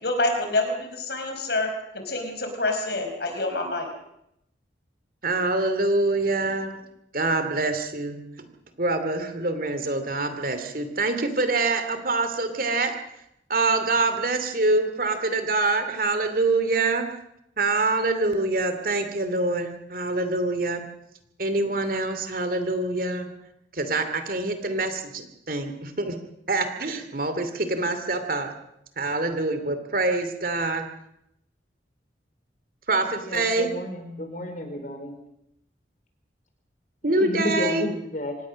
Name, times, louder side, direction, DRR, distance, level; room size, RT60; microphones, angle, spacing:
voice 1, 0.0-3.9, left 2 dB, 65° left, 5 dB, 4.9 m, -27 dB
voice 2, 5.2-6.7 7.1-8.2 8.8-12.9 13.5-17.1 17.6-20.8 21.4-23.3 23.7-26.2 26.5-28.5 29.0-30.9 32.9-33.7 37.0-37.9, right 2 dB, 50° right, 8 dB, 2.7 m, -25 dB
voice 3, 33.2-35.1 37.2-38.4, equal, 45° left, 6 dB, 4.5 m, -31 dB
26.0 x 19.0 x 6.4 m, 0.80 s
head